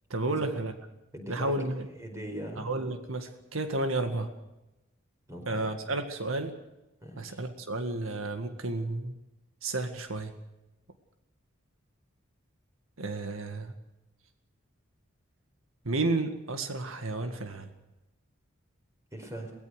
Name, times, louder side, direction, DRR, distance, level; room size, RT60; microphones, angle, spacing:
voice 1, 0.1-0.7 1.3-1.9 2.6-4.3 5.5-6.5 7.2-9.1 9.6-10.3 13.0-13.7 15.8-17.7, right 2 dB, 90° right, 7 dB, 1.9 m, -32 dB
voice 2, 1.1-2.6 5.3-5.7 7.0-7.4 19.1-19.5, right 1 dB, 15° right, 3 dB, 4.8 m, -41 dB
23.0 x 18.0 x 6.5 m, 0.97 s
head